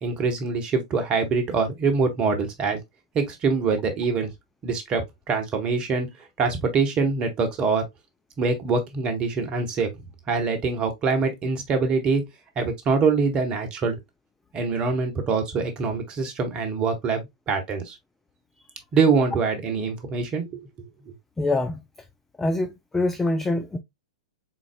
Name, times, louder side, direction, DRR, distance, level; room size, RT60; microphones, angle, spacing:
voice 1, 0.0-2.8 3.1-4.3 4.6-5.0 5.3-6.1 6.4-7.8 8.4-9.9 10.3-12.2 12.6-14.0 14.5-17.9 18.9-20.6 21.1-21.2, right 4 dB, 30° right, 1.2 m, -24 dB
voice 2, 21.4-21.8 22.4-23.8, left 2 dB, 10° left, 0.4 m, -24 dB
4.0 x 3.9 x 2.2 m
figure-of-eight pair, 105°, 3 cm